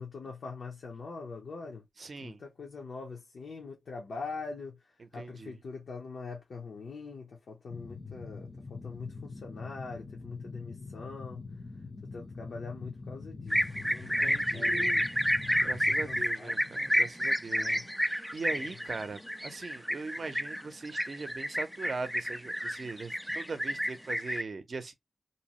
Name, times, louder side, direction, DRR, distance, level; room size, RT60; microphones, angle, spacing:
voice 1, 0.0-1.9 2.2-11.5 12.0-15.1 15.9-16.7 17.5-17.9 18.5-18.7, left 4 dB, 75° left, 0.7 m, -43 dB
voice 2, 2.0-2.4 5.0-5.6 14.0-14.9 15.6-24.9, right 4 dB, 50° right, 0.6 m, -41 dB
sound 1, 7.7-16.3, left 4 dB, 30° left, 0.6 m, -44 dB
sound 2, 13.5-24.4, equal, ahead, 0.3 m, -30 dB
2.7 x 2.0 x 2.9 m
wide cardioid pair, 105°, 0 cm